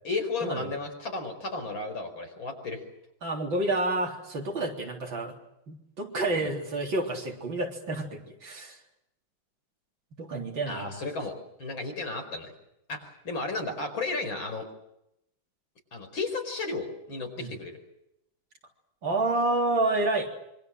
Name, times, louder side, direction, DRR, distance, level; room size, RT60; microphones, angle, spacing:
voice 1, 0.0-2.8 6.3-6.5 10.7-11.3 11.6-12.5 12.9-14.7 15.9-17.8, left 3 dB, 70° left, 4 dB, 5.7 m, -33 dB
voice 2, 3.2-5.3 5.7-8.8 10.2-11.0 17.4-17.5 19.0-20.3, right 2 dB, 65° right, 2 dB, 4.4 m, -29 dB
26.0 x 24.0 x 7.8 m, 0.81 s
omnidirectional pair, 2.2 m